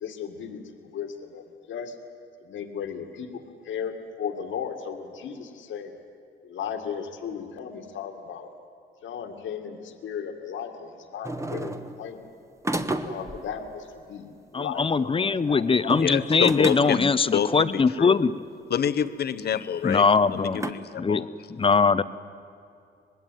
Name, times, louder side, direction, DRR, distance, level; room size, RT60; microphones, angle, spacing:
voice 1, 0.0-1.9 2.4-6.0 6.4-8.5 9.0-12.3 13.0-16.0, left 7 dB, 75° left, 6 dB, 2.2 m, -36 dB
sound 1, 11.2-12.1 12.6-13.5 15.8-17.2 18.1-18.2 19.0-19.1 20.6-20.7, right 1 dB, 15° right, 1.4 m, -32 dB
voice 2, 14.5-18.4 19.8-20.6 21.0-21.2 21.5-22.0, left 4 dB, 25° left, 15 dB, 0.8 m, -21 dB
voice 3, 16.0-18.2 18.7-20.0 20.3-21.3, left 8 dB, 55° left, 13 dB, 1.0 m, -27 dB
25.0 x 20.0 x 9.3 m, 2.5 s
cardioid pair, 90°, 20 cm